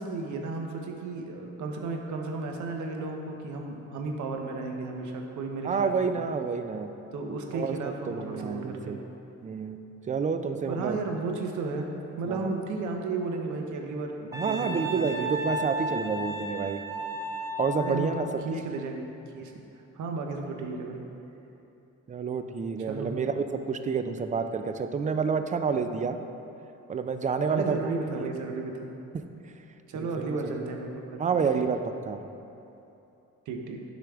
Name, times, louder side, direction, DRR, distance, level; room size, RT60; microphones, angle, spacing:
voice 1, 0.0-6.3 7.1-9.0 10.7-11.9 12.2-15.4 17.8-19.1 19.3-19.6 19.9-21.0 22.9-23.1 27.4-28.9 29.9-31.4 33.5-33.8, right 3 dB, 75° right, 2 dB, 0.8 m, -34 dB
voice 2, 5.6-6.9 7.5-7.7 8.1-9.0 9.4-9.8 10.1-11.0 12.3-12.6 14.3-16.8 17.6-18.3 18.5-18.6 22.1-26.2 26.9-28.5 29.1-29.2 30.2-30.7 31.2-32.2, right 5 dB, 25° right, 9 dB, 0.4 m, -29 dB
Wind instrument woodwind instrument, 14.3-18.0, equal, 10° right, 0.8 m, -33 dB
7.6 x 5.2 x 3.5 m, 2.9 s
cardioid pair, 90°, 30 cm